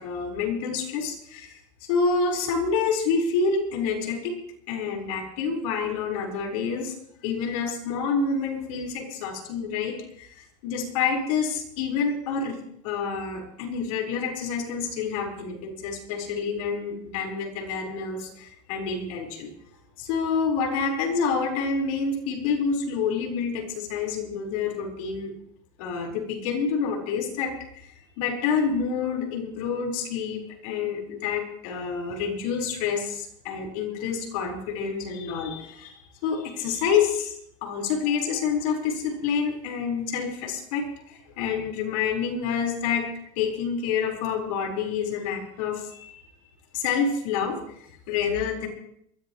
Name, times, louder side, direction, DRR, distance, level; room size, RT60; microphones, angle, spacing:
voice 1, 0.0-4.3 4.7-6.9 7.2-19.5 20.0-25.3 25.8-43.1 43.4-46.3 46.7-48.7, left 5 dB, 75° left, 1 dB, 4.5 m, -28 dB
22.5 x 14.5 x 3.1 m, 0.70 s
supercardioid pair, 130°, 18 cm